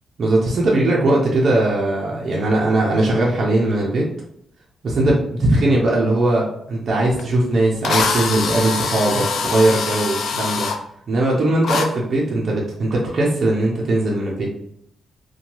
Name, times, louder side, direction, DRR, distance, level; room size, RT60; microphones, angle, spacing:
voice 1, 0.2-4.0 4.8-10.7 11.1-14.5, right 2 dB, 50° right, -4 dB, 0.6 m, -19 dB
Drill, 7.2-7.3 7.8-10.8 11.6-11.9, left 5 dB, 65° left, 0.4 m, -23 dB
2.7 x 2.2 x 2.9 m, 0.74 s
cardioid pair, 120°, 0 cm